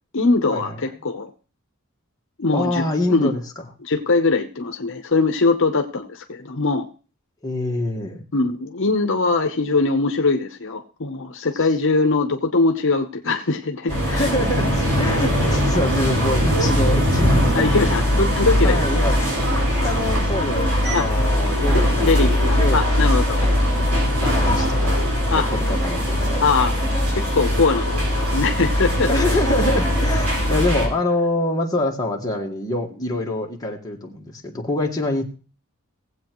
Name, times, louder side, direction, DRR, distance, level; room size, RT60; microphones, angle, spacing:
voice 1, 0.1-1.3 2.4-3.3 3.8-6.9 8.3-14.3 17.5-18.8 19.2-19.3 20.9-21.1 21.7-23.4 25.3-25.5 26.4-26.7 27.1-29.1, left 3 dB, 60° left, 6 dB, 0.8 m, -21 dB
voice 2, 2.5-3.4 7.4-8.2 14.1-17.7 18.6-19.2 19.8-22.8 23.4-23.6 24.2-25.0 25.4-26.7 29.1-35.2, left 2 dB, 20° left, -1 dB, 1.6 m, -25 dB
sound 1, 13.9-30.9, equal, 80° right, 5.0 m, -20 dB
18.5 x 8.0 x 3.0 m, 0.36 s
head